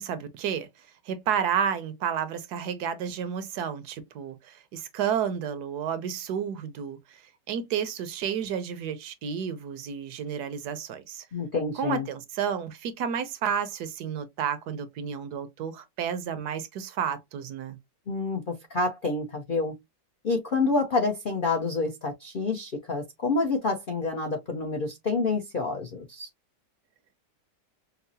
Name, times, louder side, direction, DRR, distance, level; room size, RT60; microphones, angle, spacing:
voice 1, 0.0-7.2 7.5-11.3 11.7-17.8, right 7 dB, 75° right, 1.1 m, -31 dB
voice 2, 11.3-12.1 18.1-19.7 20.2-26.3, left 3 dB, 65° left, 0.5 m, -28 dB
5.4 x 2.0 x 2.6 m
omnidirectional pair, 1.9 m